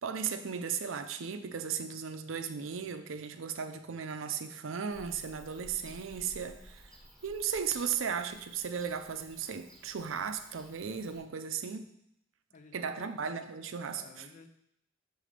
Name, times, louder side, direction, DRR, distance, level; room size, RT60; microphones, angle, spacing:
voice 1, 0.0-6.8 7.2-11.8 12.7-14.3, right 7 dB, 75° right, 8 dB, 0.5 m, -36 dB
Bird / Cricket, 4.9-11.2, right 1 dB, 5° left, 1.5 m, -55 dB
voice 2, 12.5-13.2 13.9-14.5, left 4 dB, 40° left, 8 dB, 0.5 m, -53 dB
6.4 x 3.3 x 5.0 m, 0.75 s
head